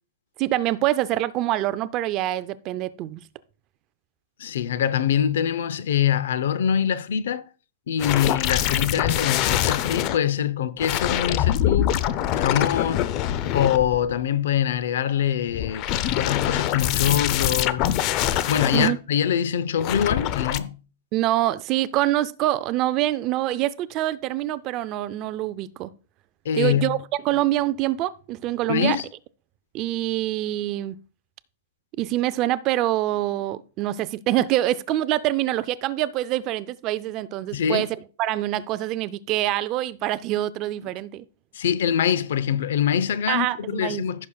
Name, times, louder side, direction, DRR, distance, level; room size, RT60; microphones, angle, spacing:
voice 1, 0.4-3.2 18.7-19.0 21.1-25.9 26.5-27.0 27.2-29.0 29.7-31.0 32.0-41.2 43.3-44.0, right 14 dB, 30° right, 0.4 m, -25 dB
voice 2, 4.4-7.4 7.9-12.0 12.3-13.1 13.5-15.9 16.2-17.9 18.5-20.8 26.4-27.0 28.7-29.0 37.5-37.9 41.5-44.3, left 9 dB, 75° left, 0.6 m, -24 dB
sound 1, 8.0-10.2 10.8-14.2 15.5-18.9 19.8-20.6, left 11 dB, 35° left, 0.5 m, -24 dB
15.5 x 6.4 x 2.3 m
supercardioid pair, 160°, 0 cm